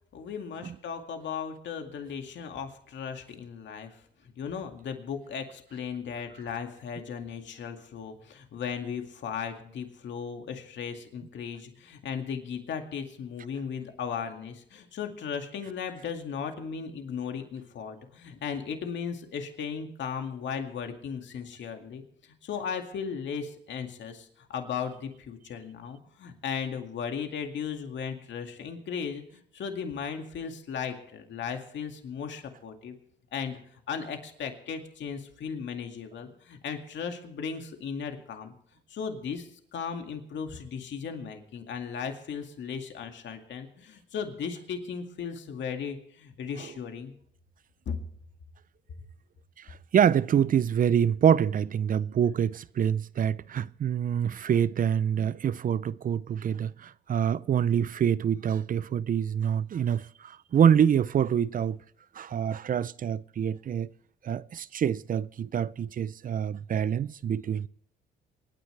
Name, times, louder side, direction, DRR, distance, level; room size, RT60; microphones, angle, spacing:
voice 1, 0.1-32.9 33.3-38.5 38.9-47.1 47.9-48.0, left 6 dB, 65° left, 2.2 m, -36 dB
voice 2, 49.6-61.8 62.2-63.9 64.2-67.7, right 8 dB, 45° right, 0.5 m, -26 dB
27.0 x 9.8 x 3.3 m
cardioid pair, 90°, 20 cm